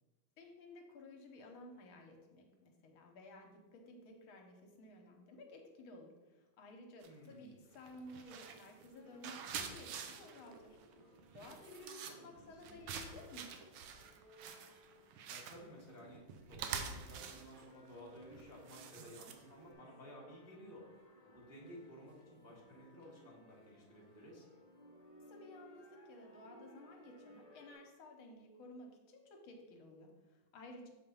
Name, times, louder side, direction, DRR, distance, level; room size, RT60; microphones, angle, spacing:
voice 1, 0.4-10.8 11.3-13.5 25.3-30.9, left 1 dB, 75° left, 2 dB, 1.6 m, -55 dB
sound 1, 7.0-7.3 7.7-19.7, right 6 dB, 75° right, 1.5 m, -47 dB
voice 2, 7.1-7.5 12.0-12.9 15.3-16.2 16.5-20.8 21.2-24.5, equal, 10° right, -3 dB, 0.8 m, -55 dB
sound 2, 9.0-27.7, equal, 45° left, 0.4 m, -62 dB
7.2 x 3.3 x 5.4 m, 1.2 s
omnidirectional pair, 2.4 m